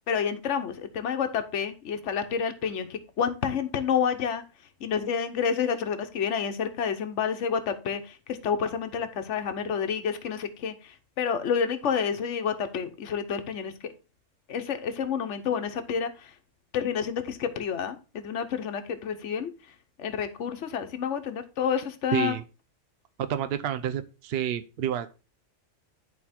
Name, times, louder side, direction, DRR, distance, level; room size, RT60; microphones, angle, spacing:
voice 1, 0.1-4.4 4.8-10.7 11.2-13.7 14.5-16.1 16.7-19.5 20.0-22.3, left 7 dB, 75° left, 8 dB, 1.2 m, -29 dB
voice 2, 22.1-22.4 23.2-25.2, right 10 dB, 60° right, 9 dB, 0.8 m, -29 dB
11.0 x 4.2 x 4.3 m, 0.32 s
omnidirectional pair, 1.3 m